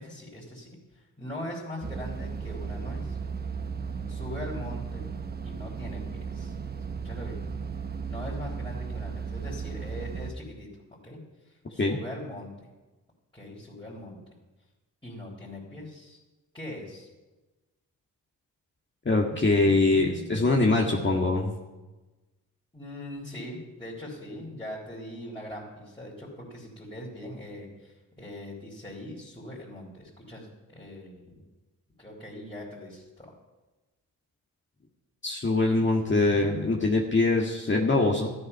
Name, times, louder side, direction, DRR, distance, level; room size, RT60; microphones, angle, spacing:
voice 1, 0.0-3.2 4.1-5.1 5.4-6.5 7.0-7.4 8.1-11.2 11.4-12.7 13.3-14.2 15.0-16.2 16.5-17.1 19.5-20.8 22.7-31.4 32.0-33.3 35.9-36.7, left 1 dB, 15° left, -6 dB, 3.9 m, -41 dB
sound 1, 1.8-10.3, right 5 dB, 25° right, 0.9 m, -35 dB
voice 2, 19.1-21.5 35.2-38.3, left 2 dB, 30° left, -1 dB, 1.9 m, -23 dB
13.5 x 10.0 x 5.6 m, 1.1 s
supercardioid pair, 55°, 36 cm